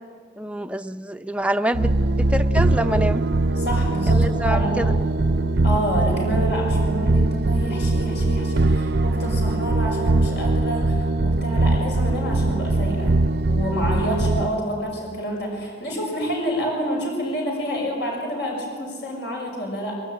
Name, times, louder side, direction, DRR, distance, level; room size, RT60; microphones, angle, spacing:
voice 1, 0.4-1.9 2.2-3.2 4.1-4.9, right 1 dB, 5° right, 9 dB, 0.6 m, -26 dB
sound 1, 1.7-14.5, right 2 dB, 60° right, 0.6 m, -21 dB
voice 2, 3.5-4.7 5.6-13.1 13.5-20.0, equal, 60° left, 0 dB, 6.4 m, -28 dB
24.5 x 23.5 x 9.2 m, 2.1 s
head